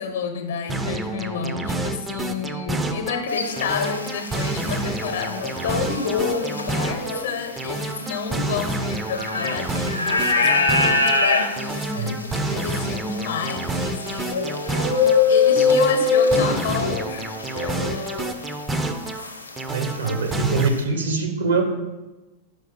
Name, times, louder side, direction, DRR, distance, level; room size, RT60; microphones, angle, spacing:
voice 1, 0.0-14.8 15.3-18.2, left 6 dB, 60° left, 7 dB, 0.9 m, -30 dB
sound 1, 0.7-3.2 3.6-7.2 7.6-11.2 11.6-15.2 15.6-19.2 19.6-20.7, right 2 dB, 10° right, 0.5 m, -29 dB
sound 2, 3.3-18.5 18.8-20.8, left 4 dB, 80° left, 0.6 m, -24 dB
voice 2, 19.7-21.6, right 4 dB, 70° right, 4 dB, 1.0 m, -23 dB
5.3 x 4.8 x 5.3 m, 1.1 s
figure-of-eight pair, 90°, 0 cm